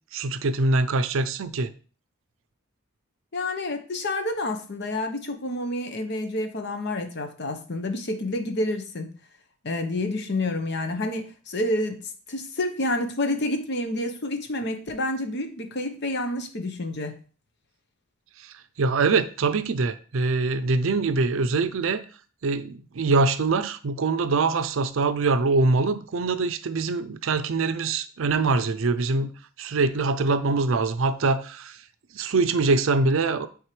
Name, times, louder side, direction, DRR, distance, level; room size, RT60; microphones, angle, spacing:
voice 1, 0.1-1.7 18.8-22.0 22.4-29.3 29.6-31.8 32.1-33.5, right 3 dB, 70° right, 0.5 m, -23 dB
voice 2, 3.3-9.1 9.6-12.0 12.3-17.2, left 1 dB, 55° left, 0.9 m, -29 dB
9.1 x 3.6 x 3.2 m
head